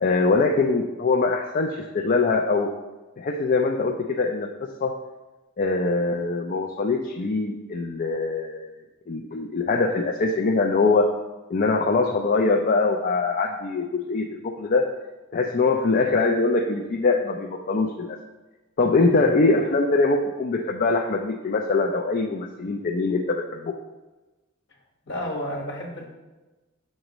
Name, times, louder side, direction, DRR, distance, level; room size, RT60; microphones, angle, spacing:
voice 1, 0.0-2.7 3.2-4.5 4.8-5.0 5.6-8.7 9.1-11.1 11.5-14.9 15.3-18.2 18.8-23.7, left 3 dB, 45° left, 2 dB, 0.4 m, -23 dB
voice 2, 25.1-26.0, left 1 dB, 60° left, -1 dB, 1.4 m, -32 dB
7.6 x 6.4 x 3.0 m, 1.1 s
head